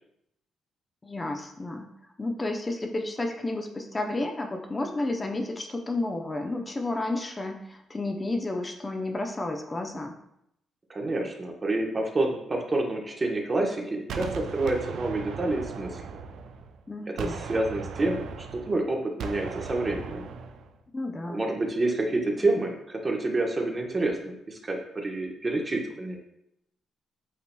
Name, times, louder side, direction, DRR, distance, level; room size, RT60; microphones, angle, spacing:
voice 1, 1.0-1.9 2.2-10.1 16.9-17.4 20.9-21.4, left 2 dB, 25° left, 4 dB, 0.5 m, -31 dB
voice 2, 10.9-16.0 17.1-18.2 18.5-20.3 21.3-26.2, right 2 dB, 30° right, 1 dB, 1.0 m, -28 dB
Gunshot gunfire, 14.1-16.8 17.2-20.7, right 5 dB, 75° right, 0.4 m, -38 dB
8.2 x 2.9 x 2.2 m, 0.79 s
cardioid pair, 70°, 0 cm